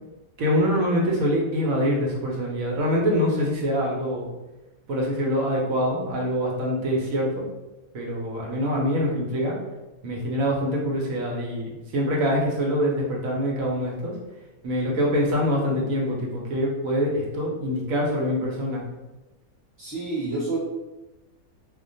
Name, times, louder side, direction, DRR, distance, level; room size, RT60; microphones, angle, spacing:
voice 1, 0.4-4.3 4.9-7.4 7.9-9.6 10.0-14.1 14.6-18.9, equal, 70° right, -2 dB, 1.0 m, -24 dB
voice 2, 19.8-20.6, right 3 dB, 20° left, -10 dB, 0.5 m, -28 dB
2.4 x 2.1 x 2.5 m, 1.0 s
omnidirectional pair, 1.5 m